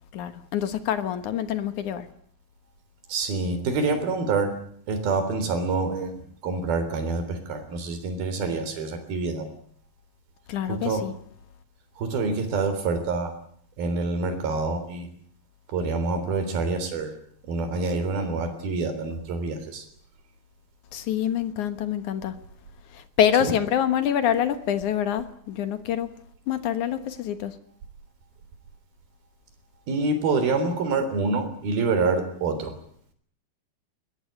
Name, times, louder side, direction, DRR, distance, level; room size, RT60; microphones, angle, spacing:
voice 1, 0.1-2.1 10.5-11.1 20.9-22.3 22.9-26.1 26.5-27.6, left 9 dB, 60° left, 11 dB, 2.5 m, -26 dB
voice 2, 3.1-4.5 4.9-9.5 10.6-11.1 12.0-13.3 13.8-15.1 15.7-17.1 17.4-19.9 23.4-23.6 29.9-32.7, right 3 dB, 75° right, 9 dB, 5.3 m, -26 dB
21.5 x 20.5 x 9.9 m, 0.62 s
omnidirectional pair, 4.3 m